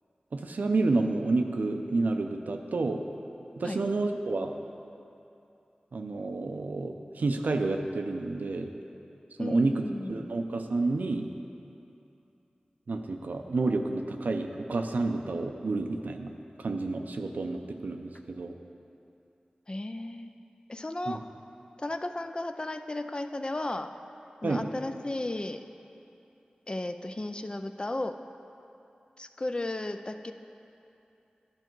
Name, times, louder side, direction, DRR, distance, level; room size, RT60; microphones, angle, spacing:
voice 1, 0.3-3.0 3.6-4.5 5.9-8.7 9.4-11.3 12.9-16.3 16.6-18.6 21.1-21.2 24.4-24.7, right 3 dB, 85° right, 5 dB, 0.5 m, -29 dB
voice 2, 9.4-10.3 19.7-20.3 20.7-21.2 21.8-23.9 24.4-25.6 26.7-28.2 29.2-30.3, left 2 dB, 35° left, 8 dB, 0.4 m, -34 dB
11.5 x 5.6 x 4.6 m, 2.8 s
wide cardioid pair, 50°, 3 cm